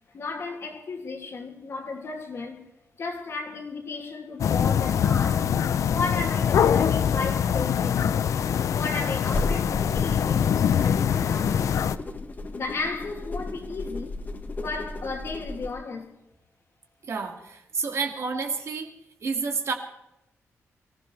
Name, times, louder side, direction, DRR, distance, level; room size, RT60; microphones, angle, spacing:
voice 1, 0.1-2.6 3.0-5.5 5.8-8.3 8.7-10.5 10.8-11.6 12.5-14.2 14.6-16.1, left 3 dB, 55° left, 2.6 m, -34 dB
sound 1, 4.4-12.0, left 8 dB, 75° left, 0.5 m, -23 dB
sound 2, 9.2-15.7, left 2 dB, 35° left, 1.6 m, -35 dB
voice 2, 17.0-19.7, right 5 dB, 60° right, 2.3 m, -30 dB
24.0 x 16.0 x 3.4 m
wide cardioid pair, 120°, 5 cm